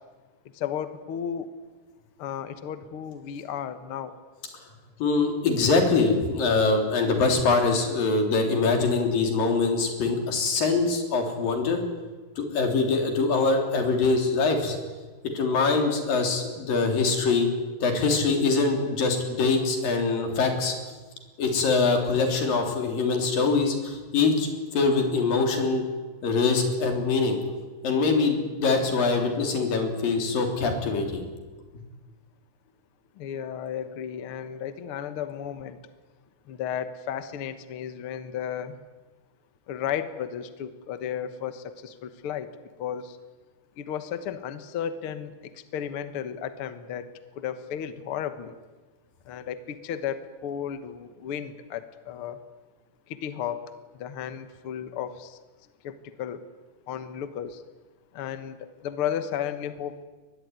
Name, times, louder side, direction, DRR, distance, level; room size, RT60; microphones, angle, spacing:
voice 1, 0.5-1.5 2.2-4.2 33.2-35.8 36.5-38.8 39.7-42.5 42.8-43.2 43.8-47.1 47.3-48.5 49.3-52.4 53.1-53.6 54.0-55.4 55.8-56.4 56.9-57.6 58.1-60.0, left 9 dB, 55° left, 10 dB, 1.7 m, -34 dB
voice 2, 5.0-11.8 12.4-14.8 15.3-17.5 17.8-20.7 21.4-25.8 26.2-27.4 27.8-31.2, left 4 dB, 85° left, 4 dB, 5.2 m, -23 dB
23.0 x 20.5 x 9.5 m, 1.3 s
omnidirectional pair, 3.9 m